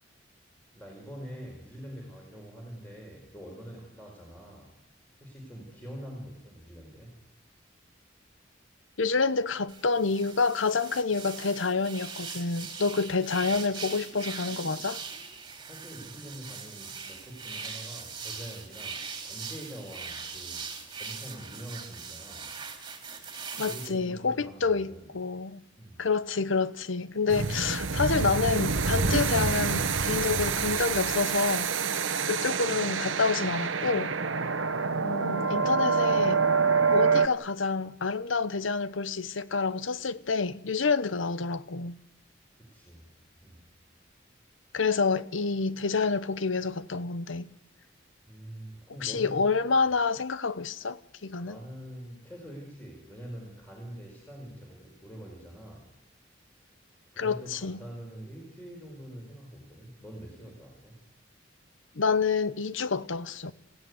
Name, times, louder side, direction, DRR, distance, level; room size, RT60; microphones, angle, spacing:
voice 1, 0.7-4.7 5.2-7.1 15.7-20.7 21.0-22.6 23.6-25.1 25.8-26.1 42.6-43.1 43.4-43.6 48.3-49.5 51.4-55.9 56.5-56.7 57.1-61.0, equal, 10° left, 4.6 m, -44 dB
voice 2, 9.0-15.0 23.6-25.6 26.0-31.7 32.2-34.1 35.0-36.4 36.9-42.0 44.7-47.5 49.0-51.6 57.2-57.8 61.9-63.5, left 4 dB, 90° left, 0.9 m, -28 dB
sound 1, 9.7-23.9, right 5 dB, 25° right, 2.9 m, -41 dB
sound 2, 27.3-37.3, right 5 dB, 90° right, 1.1 m, -27 dB
28.0 x 16.0 x 9.6 m
head